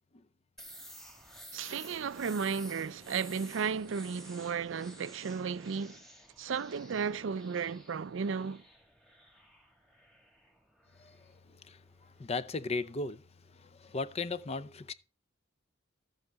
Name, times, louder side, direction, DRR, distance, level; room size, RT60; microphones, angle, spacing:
sound 1, 0.6-12.2, equal, ahead, 1.6 m, -53 dB
voice 1, 1.5-6.0 6.4-8.6, right 6 dB, 65° right, 0.4 m, -34 dB
voice 2, 11.0-11.3 11.6-11.8 12.2-13.2 13.5-14.9, left 3 dB, 30° left, 0.5 m, -36 dB
13.5 x 7.9 x 3.4 m
head